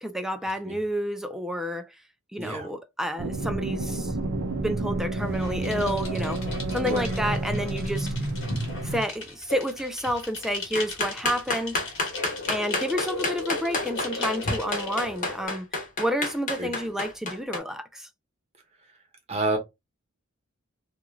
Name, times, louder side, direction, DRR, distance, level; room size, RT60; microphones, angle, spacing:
voice 1, 0.0-2.0 2.3-4.2 4.4-6.4 6.7-8.3 8.8-11.8 12.5-18.1, equal, ahead, 0.3 m, -30 dB
voice 2, 2.4-2.7 6.8-7.1 16.6-16.7 19.3-19.6, right 2 dB, 30° right, 0.9 m, -28 dB
sound 1, 3.2-9.0, right 2 dB, 75° right, 0.6 m, -30 dB
sound 2, 5.2-15.5, left 3 dB, 60° left, 1.2 m, -36 dB
sound 3, 10.7-17.6, left 2 dB, 40° left, 1.0 m, -29 dB
3.0 x 2.4 x 2.4 m
head